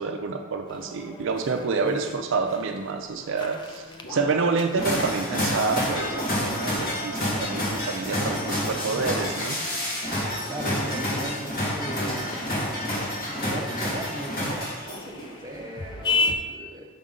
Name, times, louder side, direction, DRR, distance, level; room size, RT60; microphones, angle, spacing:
voice 1, 0.0-9.9, right 4 dB, 60° right, 4 dB, 0.4 m, -28 dB
sound 1, 0.7-16.3, left 3 dB, 20° left, 0.4 m, -37 dB
sound 2, 4.0-7.4 10.4-11.8 14.8-16.1, equal, 80° left, 1.2 m, -42 dB
sound 3, 4.8-15.2, left 1 dB, 45° left, 1.6 m, -29 dB
voice 2, 8.1-9.1 10.5-12.5 13.4-16.9, right 1 dB, 20° right, -1 dB, 0.7 m, -37 dB
5.3 x 5.1 x 3.7 m, 1.3 s
head